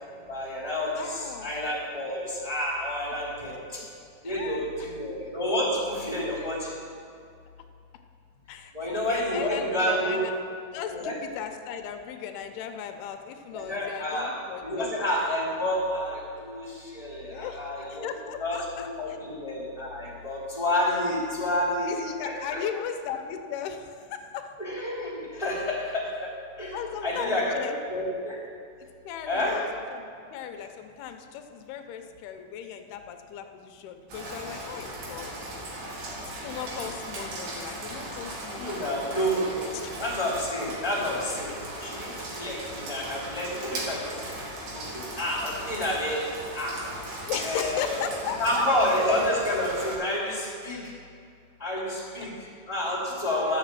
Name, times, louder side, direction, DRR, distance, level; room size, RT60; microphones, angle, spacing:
voice 1, 0.3-3.8 4.2-6.7 8.7-10.2 10.9-11.1 13.5-14.3 14.6-18.1 18.4-18.6 19.0-21.9 22.2-22.6 24.6-26.3 26.6-28.4 29.2-29.6 38.6-41.5 41.8-44.3 44.7-46.8 47.4-48.0 48.4-50.9 51.6-53.6, left 1 dB, 10° left, -7 dB, 2.3 m, -29 dB
voice 2, 1.0-1.5 3.4-3.6 4.2-4.9 6.3-6.4 8.5-10.3 10.7-14.9 17.3-19.2 21.8-24.5 26.7-27.8 29.1-35.3 35.7-35.9 36.2-39.2 39.8-39.9 47.3-48.6 51.8-52.3 53.3-53.6, left 8 dB, 80° left, 6 dB, 2.7 m, -37 dB
Rain, 34.1-49.9, right 1 dB, 65° right, 3.6 m, -38 dB
12.5 x 6.8 x 7.4 m, 2.3 s
omnidirectional pair, 4.6 m